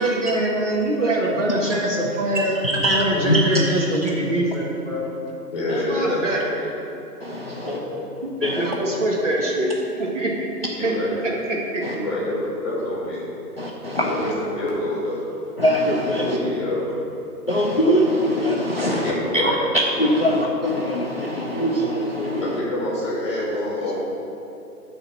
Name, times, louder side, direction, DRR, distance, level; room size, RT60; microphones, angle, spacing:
voice 1, 0.0-5.1 5.9-6.4 8.4-9.7 9.9-10.3 10.8-10.9 11.5-11.8, right 1 dB, 45° right, -3 dB, 1.7 m, -23 dB
voice 2, 2.6-3.9 5.7-5.8 7.2-7.8 8.4-8.7 11.8-11.9 13.6-14.3 15.6-16.4 17.5-22.4, equal, 40° left, -1 dB, 0.5 m, -22 dB
voice 3, 5.5-6.7 7.5-8.0 10.8-11.1 11.9-13.2 14.0-15.2 16.1-16.9 18.8-19.6 22.4-23.9, left 1 dB, 15° left, -6 dB, 1.5 m, -27 dB
9.7 x 4.1 x 6.0 m, 2.9 s
hypercardioid pair, 165°, 49 cm